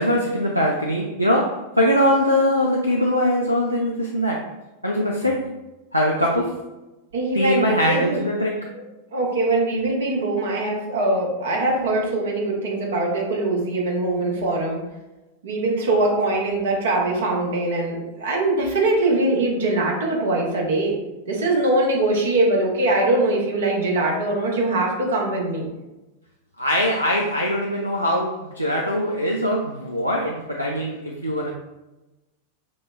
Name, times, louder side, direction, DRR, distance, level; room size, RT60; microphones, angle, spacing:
voice 1, 0.0-4.5 4.8-5.5 5.9-6.6 7.3-8.7 26.6-31.5, equal, 90° right, -1 dB, 0.3 m, -22 dB
voice 2, 7.1-8.2 8.7-8.8 9.1-14.8 15.4-20.9 21.3-25.7, right 2 dB, 60° right, -1 dB, 0.8 m, -22 dB
5.9 x 2.0 x 2.2 m, 1.0 s
figure-of-eight pair, 90°, 0 cm